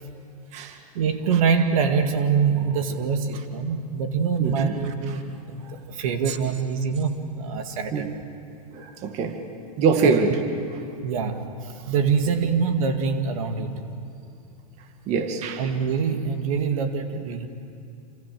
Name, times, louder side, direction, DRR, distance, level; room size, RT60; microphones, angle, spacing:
voice 1, 1.0-8.1 8.8-8.9 10.8-11.5 11.9-13.8 15.6-17.5, right 6 dB, 60° right, 6 dB, 2.1 m, -25 dB
voice 2, 4.4-5.2 6.3-6.4 7.9-8.2 8.7-9.4 9.8-10.4 10.7-10.8 15.1-15.7, right 5 dB, 35° right, 6 dB, 2.0 m, -25 dB
27.5 x 26.5 x 7.7 m, 2.5 s
hypercardioid pair, 135°, 20 cm